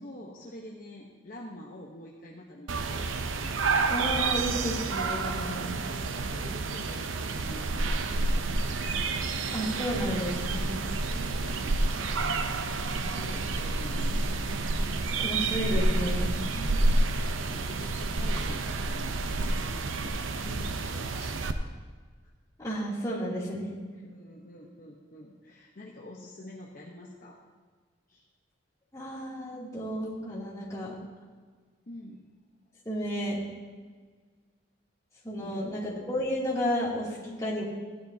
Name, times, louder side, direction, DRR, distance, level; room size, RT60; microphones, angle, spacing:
voice 1, 0.0-3.1 5.4-8.8 11.0-14.4 16.5-17.1 17.4-21.7 22.2-22.3 24.0-27.4 28.1-28.2 31.9-32.3 35.4-35.8 37.3-37.4, left 1 dB, 45° left, -2 dB, 1.0 m, -47 dB
sound 1, 2.7-21.5, right 3 dB, 85° right, 0.7 m, -29 dB
voice 2, 3.8-5.8 9.5-10.9 15.2-16.4 22.6-23.8 28.9-30.9 32.8-33.4 35.2-37.6, equal, 15° left, -7 dB, 2.8 m, -32 dB
16.0 x 11.0 x 2.8 m, 1.5 s
head